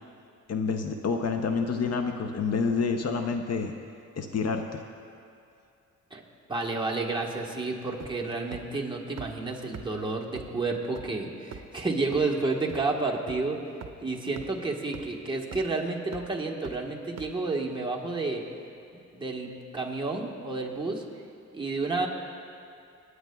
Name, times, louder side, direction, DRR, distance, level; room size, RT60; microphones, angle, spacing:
voice 1, 0.5-3.7 4.2-4.8, left 5 dB, 50° left, 5 dB, 0.7 m, -28 dB
voice 2, 6.5-13.6 14.0-18.4 19.1-21.0 21.5-22.1, right 3 dB, 15° right, -2 dB, 1.3 m, -30 dB
sound 1, 8.0-8.3 8.5-8.6 9.2-9.3 9.7-9.8 10.4-10.5 11.0-11.1 11.5-11.7 12.1-12.2 12.7-12.8 13.3-13.4 13.8-13.9 14.4-14.5 14.9-15.0 15.5-15.7 16.1-16.2 16.6-16.7 17.2-17.3, right 7 dB, 55° right, 0.8 m, -40 dB
28.0 x 9.5 x 2.3 m, 2.5 s
wide cardioid pair, 120°, 31 cm